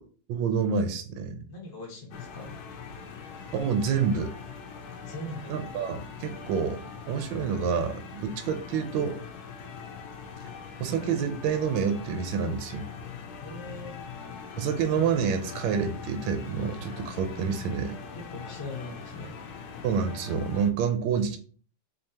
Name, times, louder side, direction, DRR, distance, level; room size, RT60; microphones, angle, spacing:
voice 1, 0.3-1.4 3.5-4.3 5.5-6.8 7.1-9.2 10.8-12.9 14.6-17.9 19.8-21.4, right 6 dB, 75° right, 7 dB, 1.2 m, -28 dB
voice 2, 1.5-2.6 5.0-5.5 13.4-14.0 18.1-19.3, left 2 dB, 30° left, -1 dB, 0.4 m, -40 dB
sound 1, 2.1-20.7, left 6 dB, 80° left, 0.9 m, -42 dB
4.4 x 2.7 x 2.7 m, 0.41 s
omnidirectional pair, 2.4 m